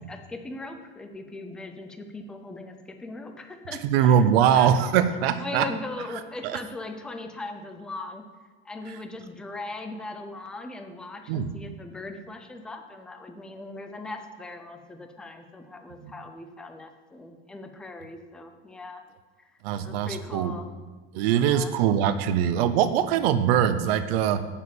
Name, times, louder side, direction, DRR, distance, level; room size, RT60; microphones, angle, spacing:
voice 1, 0.0-4.8 5.4-8.2 8.6-19.0 19.4-19.5 19.8-20.7 21.4-21.8, left 2 dB, 5° left, 6 dB, 0.3 m, -39 dB
voice 2, 3.8-5.7 6.4-6.6 11.3-11.5 16.0-16.1 19.6-20.5 21.1-24.5, right 9 dB, 65° right, 11 dB, 0.8 m, -22 dB
8.3 x 7.3 x 8.7 m, 1.4 s
supercardioid pair, 175°, 32 cm